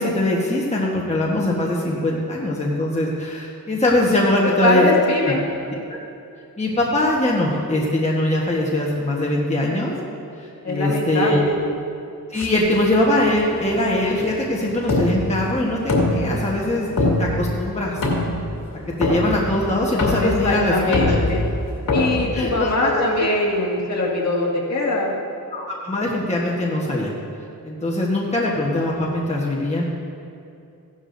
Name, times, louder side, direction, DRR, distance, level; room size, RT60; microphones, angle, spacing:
voice 1, 0.0-4.8 5.7-6.0 6.6-10.0 10.4-11.5 12.3-15.8 16.0-18.0 19.0-21.2 22.3-23.3 25.5-27.1 27.6-29.8, left 1 dB, 20° left, -3 dB, 1.2 m, -22 dB
voice 2, 4.6-5.5 10.6-11.5 20.2-21.5 21.9-25.1, left 2 dB, 50° left, -3 dB, 1.8 m, -22 dB
sound 1, 12.3-23.0, left 2 dB, 70° left, 2.2 m, -25 dB
15.5 x 12.0 x 2.6 m, 2.6 s
wide cardioid pair, 120°, 35 cm